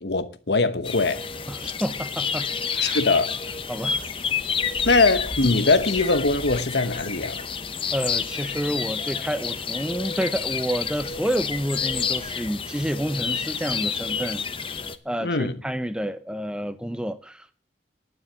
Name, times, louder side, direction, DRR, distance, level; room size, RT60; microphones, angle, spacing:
voice 1, 0.0-1.3 2.8-3.4 4.8-7.4 15.2-15.6, left 3 dB, 70° left, 1.1 m, -22 dB
sound 1, 0.8-15.0, left 6 dB, 30° left, 0.7 m, -29 dB
voice 2, 1.5-2.5 2.7-3.0 3.7-4.0 7.9-14.4 15.0-17.6, equal, 5° right, 0.7 m, -29 dB
sound 2, 3.6-12.3, equal, 60° right, 2.0 m, -45 dB
11.0 x 9.3 x 7.2 m
head